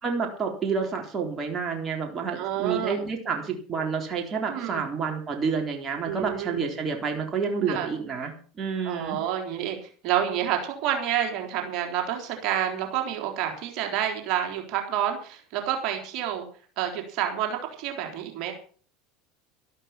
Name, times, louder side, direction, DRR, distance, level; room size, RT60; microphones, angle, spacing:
voice 1, 0.0-9.2, right 5 dB, 30° right, 2 dB, 3.7 m, -29 dB
voice 2, 2.4-3.0 4.5-4.8 6.1-6.6 7.7-7.9 8.8-9.8 10.0-16.4 16.8-18.5, right 10 dB, 55° right, 3 dB, 3.7 m, -28 dB
13.0 x 12.0 x 5.8 m, 0.43 s
hypercardioid pair, 80°, 0 cm